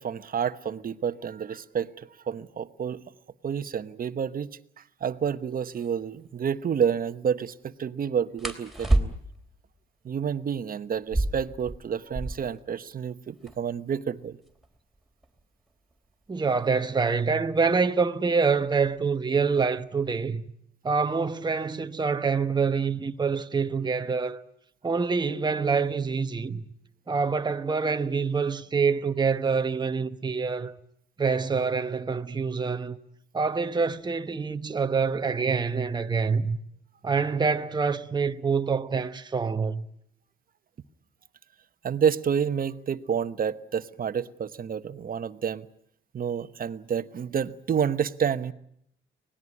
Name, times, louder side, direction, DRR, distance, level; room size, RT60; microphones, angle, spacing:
voice 1, 0.0-3.0 3.4-4.5 5.0-9.1 10.0-14.4 41.8-45.7 46.1-48.5, right 7 dB, 45° right, 1.1 m, -29 dB
sound 1, 5.7-5.9 8.4-9.5 10.9-12.6 12.9-13.0 13.2-13.8 14.4-17.0 18.0-18.3 18.7-19.2 19.5-20.2, right 1 dB, ahead, 3.6 m, -30 dB
voice 2, 16.3-20.4 20.8-24.4 24.8-26.6 27.1-30.7 31.2-33.0 33.3-36.6 37.0-39.9, right 5 dB, 20° right, 1.0 m, -26 dB
24.5 x 19.0 x 9.8 m
cardioid pair, 90°, 20 cm